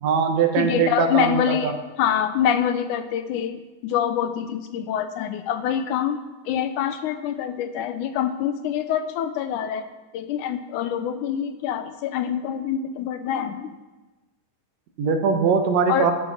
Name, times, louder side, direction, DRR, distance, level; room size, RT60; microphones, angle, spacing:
voice 1, 0.0-1.6 15.0-16.1, right 6 dB, 65° right, 5 dB, 2.1 m, -21 dB
voice 2, 0.6-9.9 10.1-13.8 15.9-16.1, left 9 dB, 75° left, 10 dB, 2.0 m, -25 dB
13.5 x 10.0 x 5.5 m, 1.2 s
omnidirectional pair, 3.8 m